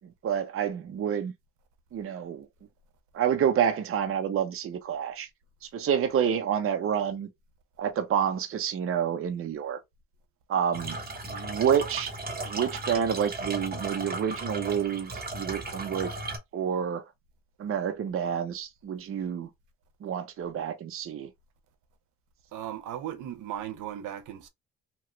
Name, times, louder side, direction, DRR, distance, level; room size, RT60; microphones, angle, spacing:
voice 1, 0.2-1.3 1.9-2.5 3.1-5.3 5.7-7.3 7.8-9.8 10.5-11.0 11.2-12.1 12.4-16.1 16.5-17.0 17.6-19.5 20.0-21.3, right 8 dB, 45° right, 0.6 m, -28 dB
sound 1, 10.7-16.4, right 2 dB, 30° right, 1.0 m, -36 dB
voice 2, 22.5-24.5, right 11 dB, 85° right, 0.8 m, -37 dB
2.9 x 2.3 x 3.0 m
cardioid pair, 90°, 30 cm